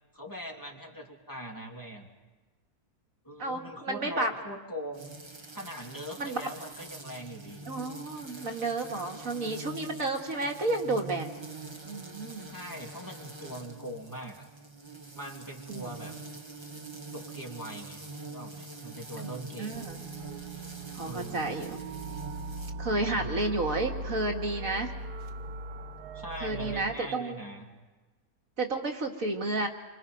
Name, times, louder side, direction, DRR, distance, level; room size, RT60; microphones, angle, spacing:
voice 1, 0.1-2.1 3.2-5.2 5.5-7.7 12.5-14.5 15.1-16.2 17.1-18.0 18.3-19.9 21.0-21.5 23.0-23.5 26.1-27.7, equal, 10° left, 0 dB, 2.7 m, -41 dB
voice 2, 3.4-4.3 6.2-6.5 7.7-11.3 11.8-12.5 15.7-15.9 19.2-19.3 19.6-20.0 20.9-21.8 22.8-24.9 26.4-27.4 28.6-29.7, right 2 dB, 60° right, 2 dB, 2.2 m, -31 dB
sound 1, 4.9-22.7, right 2 dB, 20° right, 1.4 m, -45 dB
sound 2, 19.7-26.8, right 2 dB, 90° right, 1.6 m, -39 dB
28.0 x 25.5 x 5.3 m, 1.3 s
omnidirectional pair, 1.7 m